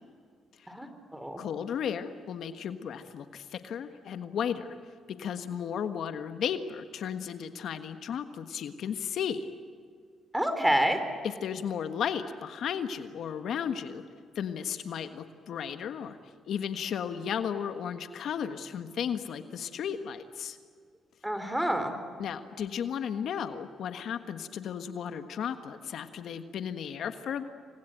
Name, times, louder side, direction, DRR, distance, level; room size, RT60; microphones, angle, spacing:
voice 1, 0.7-1.4 10.3-11.0 21.2-22.0, equal, 5° right, 8 dB, 4.1 m, -28 dB
voice 2, 1.4-4.7 5.2-9.4 11.2-14.0 14.3-16.2 16.5-20.6 22.2-27.5, left 8 dB, 70° left, 8 dB, 1.4 m, -34 dB
28.0 x 23.0 x 9.2 m, 2.1 s
cardioid pair, 90°, 0 cm